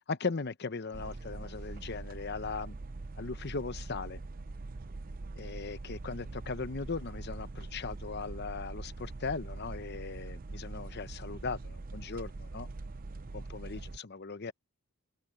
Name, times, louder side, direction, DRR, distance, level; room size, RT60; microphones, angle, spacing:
voice 1, 0.1-2.8 3.2-4.2 5.4-12.7 13.3-14.5, left 4 dB, 50° left, 0.8 m, -38 dB
sound 1, 0.9-14.0, right 3 dB, 40° right, 0.6 m, -43 dB
open air
head